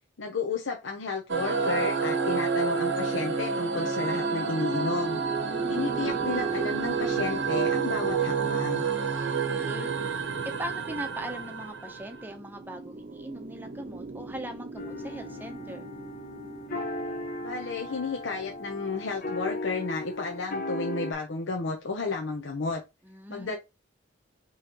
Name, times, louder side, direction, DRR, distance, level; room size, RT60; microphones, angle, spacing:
voice 1, 0.2-5.2 5.7-8.8 17.4-22.8 23.3-23.6, left 3 dB, 75° left, 0.8 m, -32 dB
sound 1, 1.3-12.2, right 5 dB, 65° right, 0.8 m, -29 dB
sound 2, 3.5-20.6, right 3 dB, 40° right, 0.5 m, -43 dB
voice 2, 5.4-6.0 9.4-9.9 10.4-15.9 23.0-23.6, equal, 10° right, 0.8 m, -40 dB
sound 3, 14.8-21.1, left 2 dB, 50° left, 1.1 m, -36 dB
5.5 x 3.1 x 3.0 m
head